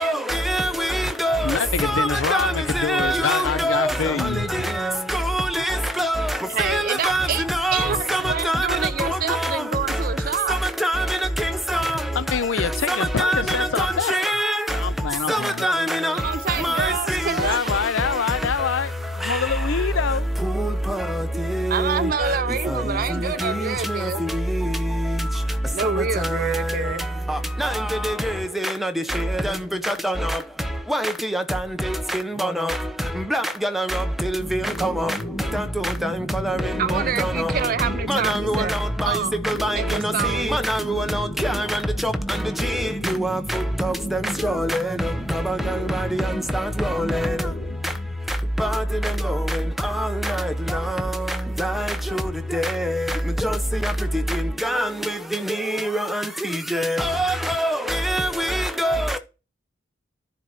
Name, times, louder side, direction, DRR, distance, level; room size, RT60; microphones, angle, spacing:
voice 1, 0.0-1.5 1.8-3.9 4.8-6.2 6.6-8.7 9.0-9.6 10.8-11.0 11.4-12.0 12.9-14.6 15.3-16.1 16.6-17.2 20.6-21.0 21.5-21.9 23.4-23.5 27.3-27.7 28.0-28.3 28.6-28.9 29.4-29.5 29.9-30.3 30.9-31.4 32.1-32.7 33.3-35.1 35.5-35.6 36.4-36.6 36.9-37.5 38.1-38.6 39.0-39.1 39.4-39.8 40.4-42.1 42.7-44.8 45.5-45.6 46.1-46.2 46.8-47.2 48.6-48.8 49.8-50.4 51.6-51.9 52.1-52.2 52.5-52.9 53.4-53.6 53.8-53.9 54.6-54.9 55.9-56.2 56.7-59.1, right 1 dB, ahead, 0.8 m, -24 dB
voice 2, 1.4-4.7 7.8-8.3 12.1-14.2 14.7-15.7 17.3-18.9 19.2-20.3, left 6 dB, 85° left, 0.5 m, -25 dB
voice 3, 6.5-7.4 7.7-10.6 16.1-17.8 21.7-24.3 25.7-27.1 36.8-38.7 39.1-39.4 39.7-40.6, right 6 dB, 50° right, 0.5 m, -27 dB
sound 1, 34.4-48.2, equal, 20° left, 1.5 m, -32 dB
10.0 x 4.1 x 6.3 m
head